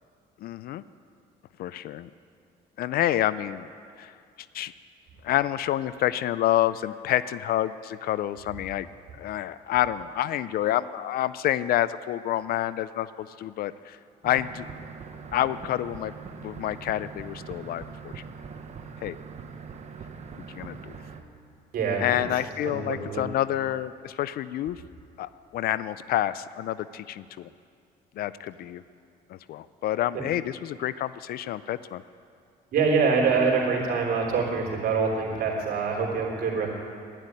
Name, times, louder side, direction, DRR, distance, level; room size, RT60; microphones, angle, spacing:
voice 1, 0.4-0.8 1.6-2.1 2.8-3.7 4.0-4.1 4.5-4.7 5.2-8.9 9.2-14.0 14.2-14.7 15.3-16.1 16.4-18.2 19.0-19.2 20.5-20.9 22.0-24.8 25.2-27.5 28.2-28.8 29.3-32.0, left 12 dB, 65° left, 16 dB, 0.4 m, -28 dB
sound 1, 14.2-21.2, right 6 dB, 40° right, 1.2 m, -42 dB
voice 2, 21.7-23.2 30.1-30.2 32.7-36.7, right 5 dB, 65° right, -1 dB, 3.6 m, -25 dB
12.0 x 11.0 x 9.6 m, 2.3 s
cardioid pair, 110°, 17 cm